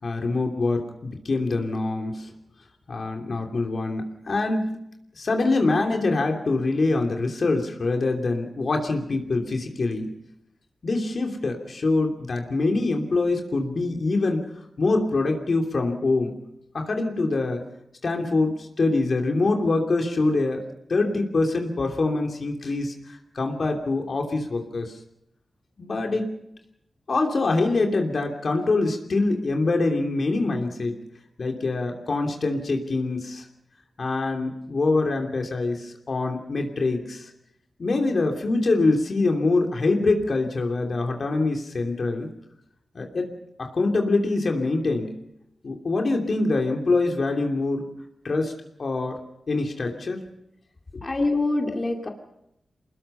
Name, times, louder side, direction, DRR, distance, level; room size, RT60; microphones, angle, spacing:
voice 1, 0.0-2.3 2.9-4.8 5.2-10.1 10.8-14.4 14.8-16.4 16.7-17.6 18.0-20.6 20.9-24.9 25.8-26.3 27.1-31.0 31.4-33.4 34.0-37.3 37.8-42.3 42.9-43.3 43.6-45.1 45.6-47.8 48.2-48.5 48.8-49.2 49.5-50.2 50.9-51.0, left 3 dB, 60° left, 2 dB, 2.9 m, -24 dB
voice 2, 51.0-52.1, left 2 dB, 40° left, 2 dB, 2.6 m, -25 dB
24.0 x 20.5 x 5.7 m, 0.81 s
cardioid pair, 45°, 0 cm